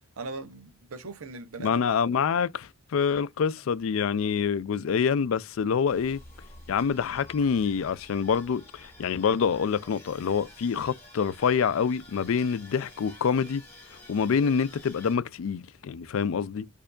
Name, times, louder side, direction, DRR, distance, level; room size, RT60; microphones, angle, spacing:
voice 1, 0.2-2.2, right 3 dB, 85° right, 0.7 m, -40 dB
voice 2, 1.6-6.2 6.7-13.6 14.1-16.7, left 6 dB, 75° left, 0.4 m, -26 dB
sound 1, 5.9-15.2, left 1 dB, 15° left, 1.9 m, -50 dB
4.4 x 2.6 x 2.4 m
head